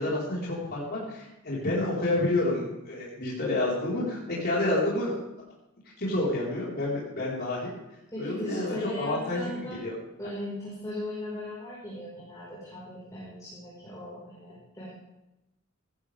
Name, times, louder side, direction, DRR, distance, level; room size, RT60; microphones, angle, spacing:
voice 1, 0.0-5.2 6.0-7.7 8.2-9.9, left 2 dB, 50° left, -5 dB, 4.6 m, -29 dB
voice 2, 8.1-9.8 10.2-14.9, left 1 dB, 15° left, -8 dB, 5.0 m, -37 dB
16.5 x 14.5 x 3.6 m, 0.92 s
head